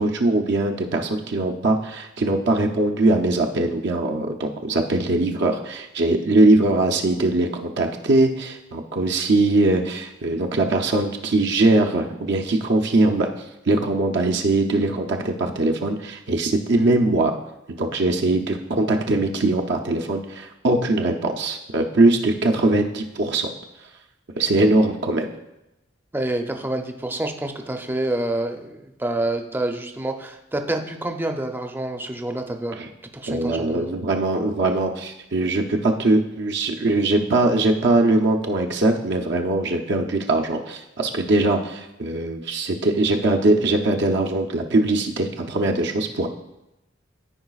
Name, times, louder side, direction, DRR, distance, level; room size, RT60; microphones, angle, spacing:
voice 1, 0.0-13.3 13.7-17.3 17.7-23.5 24.4-25.3 32.7-32.9 33.3-46.3, right 2 dB, 65° right, 2 dB, 0.6 m, -21 dB
voice 2, 26.1-32.7 33.1-33.9, right 1 dB, 10° right, 5 dB, 0.5 m, -27 dB
13.5 x 4.8 x 2.4 m, 0.91 s
head